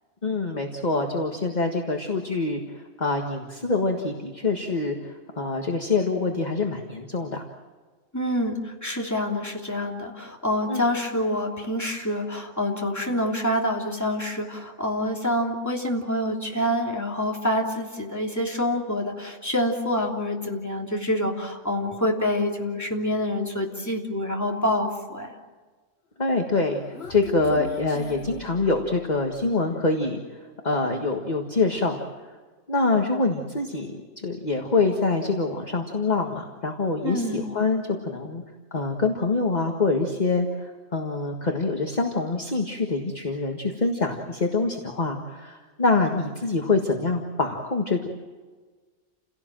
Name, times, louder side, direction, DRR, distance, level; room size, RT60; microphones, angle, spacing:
voice 1, 0.2-2.6 3.0-7.4 10.7-10.8 26.2-26.8 27.1-30.2 30.6-32.0 32.7-38.4 38.7-48.1, left 3 dB, 35° left, 2 dB, 1.7 m, -25 dB
voice 2, 8.1-25.3 37.0-37.4, left 1 dB, 15° left, -1 dB, 3.1 m, -27 dB
Human voice, 26.4-29.4, left 3 dB, 55° left, 1.7 m, -41 dB
29.5 x 17.5 x 7.6 m, 1.4 s
omnidirectional pair, 1.3 m